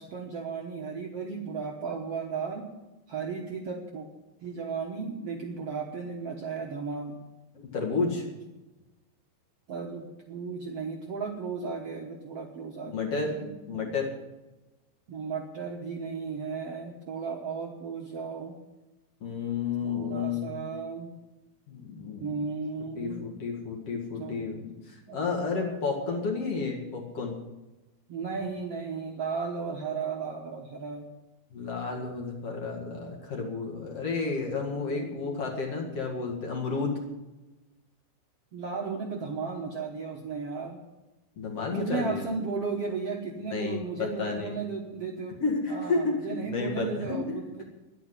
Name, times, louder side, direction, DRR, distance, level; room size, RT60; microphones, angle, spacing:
voice 1, 0.0-2.7 3.1-4.1 4.4-7.2 9.7-14.0 15.1-18.6 19.8-21.1 22.2-23.3 24.2-24.5 24.8-26.2 28.1-31.1 34.7-35.5 38.5-40.8 41.6-45.4 45.7-47.6, right 5 dB, 60° right, 1 dB, 1.7 m, -35 dB
voice 2, 7.7-8.3 12.9-13.3 13.7-14.1 19.2-20.7 21.7-22.4 23.0-24.6 25.1-27.3 31.5-37.0 41.4-42.2 43.5-44.5 45.4-47.2, left 4 dB, 45° left, 0 dB, 2.6 m, -31 dB
11.0 x 9.3 x 9.7 m, 1.1 s
omnidirectional pair, 4.2 m